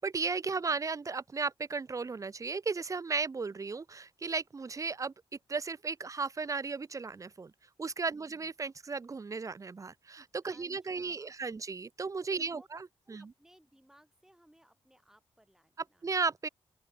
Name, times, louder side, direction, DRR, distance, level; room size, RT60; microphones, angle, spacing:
voice 1, 0.0-5.1 5.5-7.5 7.8-13.3 16.0-16.5, right 4 dB, 30° right, 0.5 m, -35 dB
voice 2, 8.0-8.5 10.4-11.4 12.3-12.7 13.1-16.2, equal, 5° right, 3.8 m, -63 dB
open air
cardioid pair, 85°, 11 cm